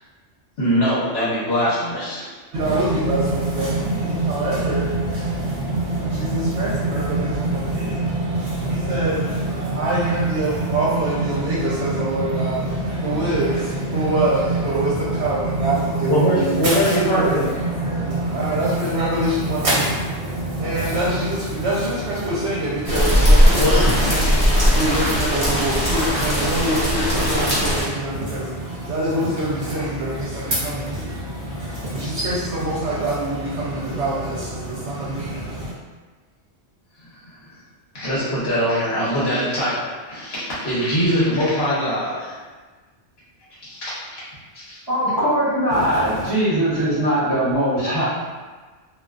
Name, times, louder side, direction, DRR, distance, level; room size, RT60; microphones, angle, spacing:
voice 1, 0.6-2.3 16.1-17.5 23.5-24.0 37.2-37.4 37.9-42.4 43.6-44.2 44.5-44.8, equal, 60° left, -9 dB, 1.0 m, -22 dB
voice 2, 2.5-35.7 45.7-46.3, right 1 dB, 75° right, -7 dB, 0.9 m, -23 dB
sound 1, 22.9-27.9, equal, 35° left, 1.0 m, -18 dB
voice 3, 44.9-48.0, right 1 dB, 25° right, -13 dB, 0.6 m, -20 dB
2.4 x 2.3 x 2.3 m, 1.3 s
omnidirectional pair, 1.2 m